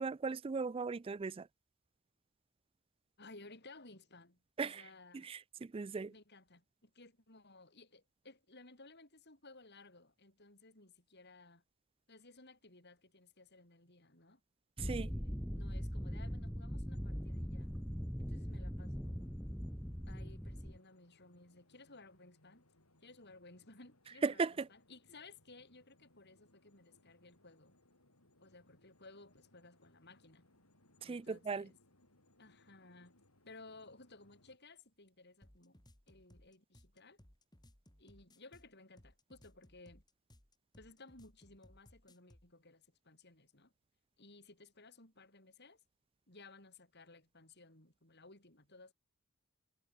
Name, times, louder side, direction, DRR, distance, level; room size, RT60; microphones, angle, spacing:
voice 1, 0.0-1.5 4.6-4.8 5.1-6.1 14.8-15.1 24.2-24.7 31.0-31.7, right 4 dB, 25° right, 0.3 m, -37 dB
voice 2, 3.2-5.3 6.1-11.6 12.1-14.4 14.8-17.7 18.2-19.3 20.1-22.6 23.0-27.8 28.4-30.5 31.0-31.8 32.4-33.1 33.5-37.2 38.0-40.0 40.8-43.7 44.2-45.8 46.3-48.9, left 3 dB, 50° left, 6.1 m, -58 dB
sound 1, 14.8-20.8, equal, ahead, 0.8 m, -41 dB
sound 2, 16.9-34.6, left 1 dB, 80° left, 7.9 m, -71 dB
sound 3, 35.4-42.5, left 1 dB, 20° left, 2.3 m, -63 dB
head